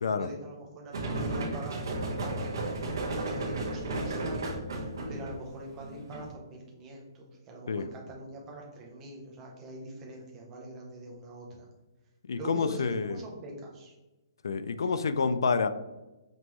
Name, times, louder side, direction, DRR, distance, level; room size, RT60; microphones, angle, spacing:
voice 1, 0.0-1.8 2.1-11.7 12.4-13.9 14.9-15.2, right 1 dB, 15° right, -2 dB, 0.7 m, -44 dB
sound 1, 0.9-6.3, right 2 dB, 65° right, 1.1 m, -33 dB
voice 2, 12.3-13.2 14.4-15.7, left 5 dB, 90° left, 12 dB, 0.4 m, -28 dB
5.3 x 3.0 x 3.0 m, 1.1 s
hypercardioid pair, 180°, 2 cm